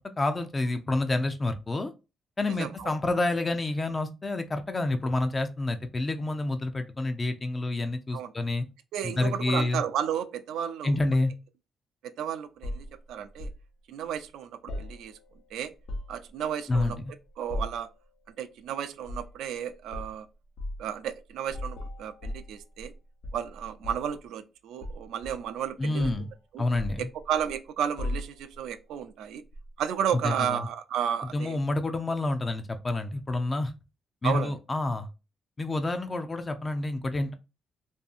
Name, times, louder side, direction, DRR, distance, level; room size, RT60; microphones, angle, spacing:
voice 1, 0.2-1.9 2.4-8.6 9.0-9.8 10.8-11.3 16.7-17.0 25.8-26.3 26.6-27.1 30.2-30.7 31.3-33.7 34.2-35.1 35.6-37.3, left 2 dB, 25° left, 0.4 m, -28 dB
voice 2, 2.6-2.9 8.1-8.3 8.9-11.0 12.0-13.5 13.9-15.2 15.5-15.7 16.1-17.0 17.4-17.9 18.4-20.3 20.8-22.9 23.3-26.1 26.5-26.6 27.3-29.4 29.8-31.6 34.2-34.5, right 9 dB, 85° right, 0.3 m, -33 dB
sound 1, 12.6-13.6 14.7-15.4 15.7-16.3 16.7-17.1 17.5-17.9 19.0-19.3 19.9-20.1 20.6-20.8 21.5-22.9 23.2-24.2 24.8-25.7 26.0-26.3 26.7-27.6 28.0-28.6 29.5-29.7, left 1 dB, 75° left, 0.8 m, -37 dB
2.6 x 2.6 x 2.3 m
cardioid pair, 90°, 0 cm